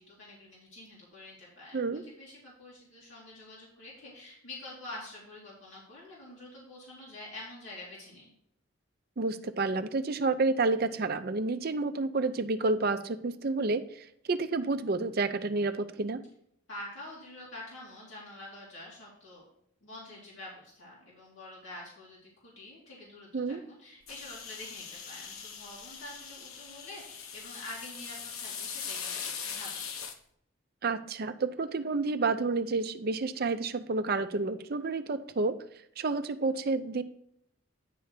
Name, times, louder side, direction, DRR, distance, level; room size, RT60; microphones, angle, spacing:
voice 1, 0.0-8.3 16.7-19.4 19.8-29.8, left 1 dB, 70° left, -6 dB, 2.9 m, -47 dB
voice 2, 9.2-16.2 23.3-23.6 30.8-35.6 36.0-37.0, right 3 dB, 45° right, 10 dB, 0.5 m, -30 dB
sound 1, 24.1-30.2, left 6 dB, 90° left, 0.9 m, -41 dB
10.0 x 3.3 x 6.5 m, 0.73 s
head